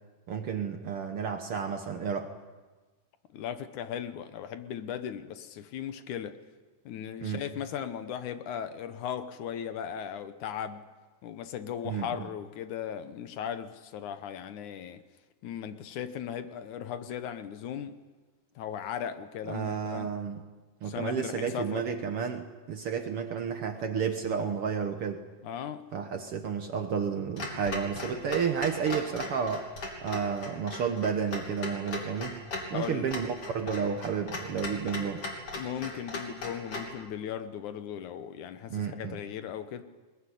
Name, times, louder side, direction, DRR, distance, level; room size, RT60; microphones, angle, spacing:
voice 1, 0.3-2.3 7.2-7.4 11.8-12.1 19.5-20.4 20.8-25.2 25.9-29.7 30.0-32.4 32.7-35.2 38.7-39.2, right 6 dB, 60° right, 1.7 m, -31 dB
voice 2, 3.3-6.4 6.9-10.9 11.2-15.0 15.4-18.0 18.6-20.1 20.8-21.9 25.4-25.8 32.7-33.1 35.6-39.8, left 9 dB, 70° left, 2.4 m, -37 dB
Clock, 27.4-36.9, left 2 dB, 45° left, 3.9 m, -39 dB
21.5 x 21.0 x 10.0 m
omnidirectional pair, 3.7 m